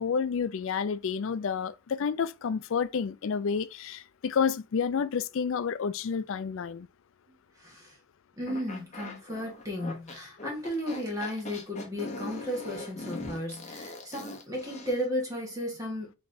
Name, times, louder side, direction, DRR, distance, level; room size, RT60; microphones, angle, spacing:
voice 1, 0.0-6.9, left 6 dB, 60° left, 0.4 m, -30 dB
voice 2, 7.6-7.9 8.4-16.1, equal, 15° right, 1.4 m, -34 dB
sound 1, 8.5-15.1, left 2 dB, 30° left, 0.9 m, -41 dB
5.8 x 3.1 x 2.6 m
head